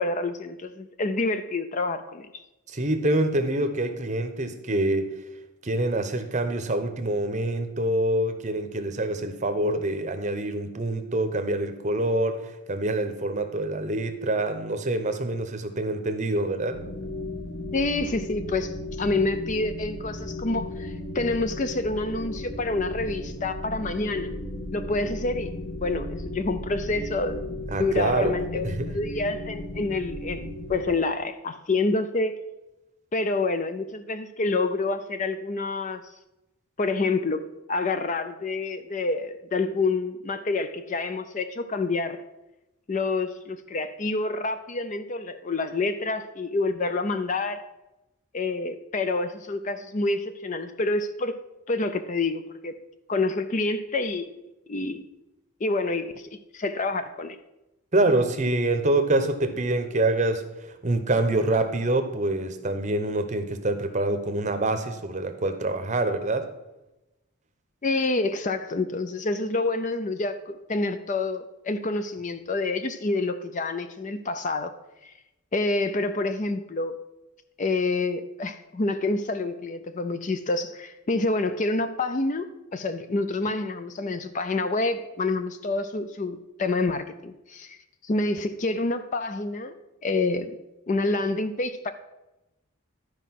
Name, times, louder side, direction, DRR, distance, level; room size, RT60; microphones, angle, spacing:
voice 1, 0.0-2.4 17.7-24.3 24.7-25.5 25.8-32.4 33.1-36.0 36.8-42.2 42.9-47.6 48.3-51.4 51.7-52.7 53.1-54.3 54.7-55.1 55.6-57.4 67.8-74.7 75.0-75.1 75.5-77.0 77.6-82.5 82.7-87.8 88.0-89.8 90.0-90.6 90.9-91.9, left 3 dB, 35° left, 10 dB, 0.4 m, -28 dB
voice 2, 2.7-5.1 5.6-16.8 27.7-29.0 57.9-66.5, right 2 dB, 30° right, 8 dB, 0.8 m, -26 dB
sound 1, 16.7-30.9, left 1 dB, 55° left, 1.5 m, -35 dB
11.5 x 5.0 x 5.8 m, 0.97 s
head